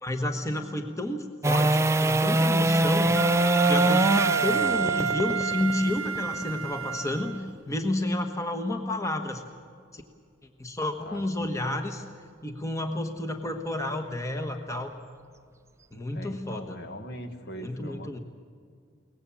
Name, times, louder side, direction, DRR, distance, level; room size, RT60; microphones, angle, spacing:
voice 1, 0.0-3.2 3.6-9.4 9.9-10.0 10.6-12.0 12.4-14.9 15.9-16.8 17.6-18.2, left 1 dB, 15° left, 5 dB, 1.2 m, -30 dB
sound 1, 1.4-7.6 14.1-14.2, right 2 dB, 15° right, 0.5 m, -24 dB
Wind instrument woodwind instrument, 3.1-7.4, right 6 dB, 75° right, 0.7 m, -29 dB
voice 2, 11.0-11.7 16.1-18.2, equal, 50° left, 6 dB, 1.7 m, -41 dB
23.0 x 19.0 x 7.2 m, 2.1 s
head